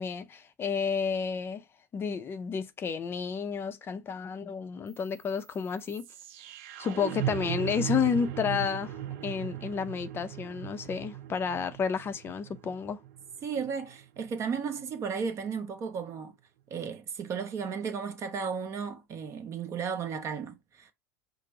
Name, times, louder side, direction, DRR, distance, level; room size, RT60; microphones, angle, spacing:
voice 1, 0.0-1.6 1.9-6.1 6.8-13.0, left 6 dB, 30° left, 0.5 m, -31 dB
sound 1, 4.9-14.9, right 12 dB, 65° right, 0.5 m, -38 dB
voice 2, 13.4-16.3 16.7-20.9, right 6 dB, 40° right, 0.9 m, -34 dB
5.0 x 2.0 x 4.5 m
hypercardioid pair, 95°, 8 cm